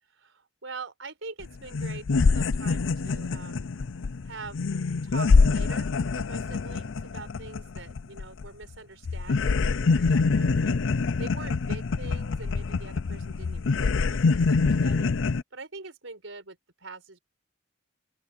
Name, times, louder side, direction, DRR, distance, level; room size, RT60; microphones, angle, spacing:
voice 1, 0.1-3.7 4.2-4.6 5.0-10.8 11.2-15.1 15.5-17.2, right 3 dB, 85° right, 4.6 m, -44 dB
sound 1, 1.4-1.5 1.7-8.7 9.0-15.4, left 4 dB, 75° left, 0.5 m, -25 dB
open air
head